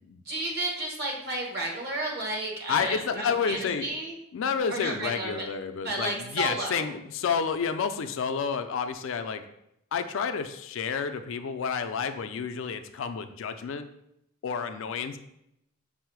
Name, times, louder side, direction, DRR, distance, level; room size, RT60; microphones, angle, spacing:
voice 1, 0.2-4.1 4.7-5.5 5.8-6.9, right 2 dB, 55° right, -1 dB, 1.1 m, -32 dB
voice 2, 2.7-3.9 4.3-9.4 9.9-13.9 14.4-15.2, left 6 dB, 65° left, 8 dB, 0.4 m, -30 dB
5.5 x 2.0 x 4.5 m, 0.79 s
head